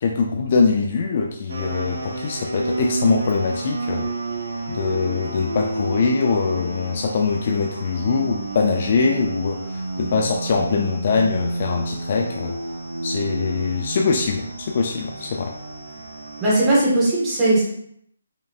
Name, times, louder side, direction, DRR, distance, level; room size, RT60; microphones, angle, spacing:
voice 1, 0.0-4.1 4.7-12.6 13.0-15.5, left 4 dB, 40° left, 3 dB, 0.4 m, -22 dB
sound 1, 1.5-16.7, right 2 dB, 85° right, 0.8 m, -30 dB
voice 2, 16.4-17.6, right 1 dB, 10° right, -8 dB, 1.4 m, -18 dB
5.1 x 3.1 x 2.4 m, 0.70 s
hypercardioid pair, 170°, 0 cm